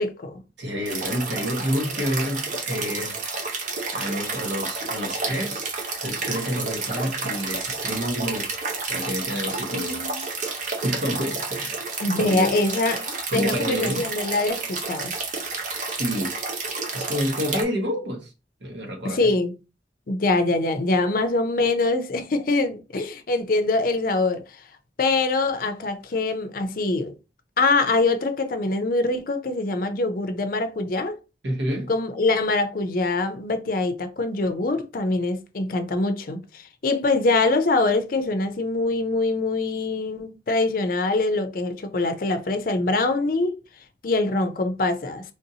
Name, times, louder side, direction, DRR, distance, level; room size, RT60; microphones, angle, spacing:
voice 1, 0.0-0.4 9.7-10.2 12.0-13.0 13.3-15.1 19.0-19.5 20.1-24.4 25.0-27.1 27.6-31.2 31.9-43.5 44.0-45.2, left 2 dB, 50° left, 0.5 m, -24 dB
voice 2, 0.6-3.2 3.9-5.7 6.0-8.5 8.9-10.0 10.8-11.8 12.2-12.6 13.3-14.0 16.0-16.3 16.9-18.3 18.6-19.3 31.4-31.9, equal, 80° right, 1.2 m, -28 dB
sound 1, 0.9-17.6, right 3 dB, 45° right, 0.7 m, -30 dB
3.5 x 2.6 x 2.7 m
head